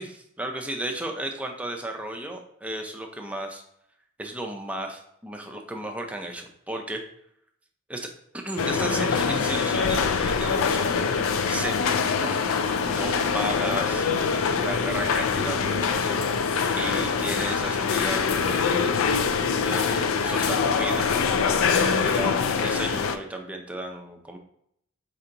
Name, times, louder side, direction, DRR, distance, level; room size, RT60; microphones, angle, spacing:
voice 1, 0.0-3.6 4.2-7.0 7.9-8.1 8.4-11.0 11.5-12.4 12.9-16.3 16.7-19.0 19.6-21.1 21.4-24.4, right 1 dB, 5° right, 2 dB, 0.5 m, -34 dB
sound 1, 8.6-23.2, left 5 dB, 85° left, 0.4 m, -24 dB
4.3 x 2.8 x 3.7 m, 0.73 s
head